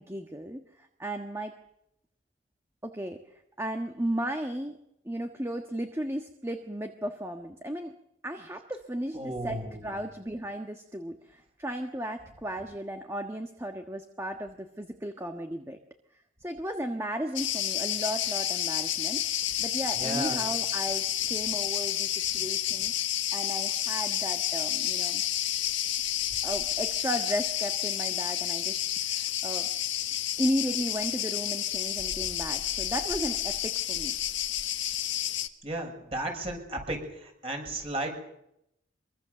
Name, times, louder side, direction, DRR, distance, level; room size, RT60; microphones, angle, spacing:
voice 1, 0.0-1.5 2.8-3.2 3.6-4.8 5.0-7.9 8.2-15.8 16.4-19.3 19.6-22.9 23.3-25.2 26.4-29.7 30.4-34.2, equal, 15° right, 4 dB, 1.5 m, -35 dB
voice 2, 9.1-9.8 20.0-20.4 35.6-38.2, right 1 dB, 30° right, 3 dB, 6.8 m, -34 dB
Cricket, 17.4-35.5, left 12 dB, 75° left, 1.6 m, -30 dB
25.0 x 23.5 x 6.9 m, 0.79 s
head